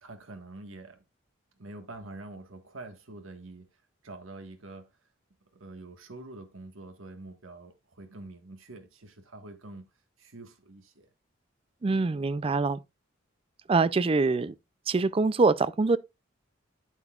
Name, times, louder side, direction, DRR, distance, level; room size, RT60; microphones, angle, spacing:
voice 1, 0.0-1.0 1.6-5.0 5.4-9.9 10.2-11.1, right 2 dB, 90° right, 1.5 m, -46 dB
voice 2, 11.8-12.8 13.7-14.5 14.9-16.0, right 3 dB, 30° right, 0.3 m, -24 dB
9.1 x 8.2 x 2.4 m
head